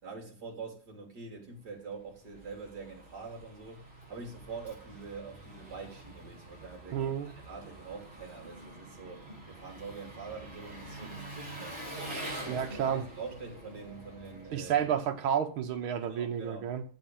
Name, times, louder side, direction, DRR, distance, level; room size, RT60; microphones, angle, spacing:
voice 1, 0.0-14.7 16.0-16.7, right 4 dB, 50° right, 3.9 m, -45 dB
Engine, 1.8-15.4, right 1 dB, 15° right, 5.8 m, -46 dB
voice 2, 6.9-7.3 12.5-13.0 14.5-16.8, right 8 dB, 85° right, 2.1 m, -31 dB
14.5 x 4.9 x 7.8 m
omnidirectional pair, 2.2 m